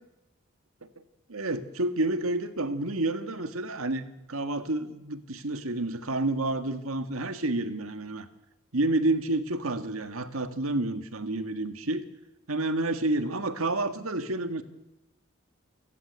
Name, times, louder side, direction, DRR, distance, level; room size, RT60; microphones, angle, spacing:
voice 1, 1.3-8.3 8.7-12.0 12.5-14.6, right 2 dB, 85° right, 10 dB, 1.7 m, -29 dB
29.0 x 15.5 x 8.2 m, 0.95 s
head